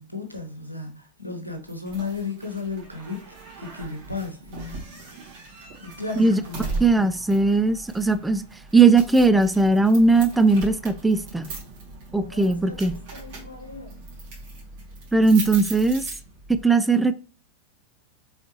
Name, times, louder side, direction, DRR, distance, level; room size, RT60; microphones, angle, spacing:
voice 1, 0.0-5.2 5.8-7.3 12.2-14.1, left 4 dB, 90° left, 1.1 m, -35 dB
sound 1, 1.7-16.6, right 3 dB, 50° right, 1.9 m, -39 dB
voice 2, 6.8-8.4 8.7-11.5 12.1-13.0 15.1-16.1 16.5-17.2, right 3 dB, 5° right, 0.3 m, -19 dB
4.4 x 3.9 x 2.9 m
figure-of-eight pair, 90°, 0 cm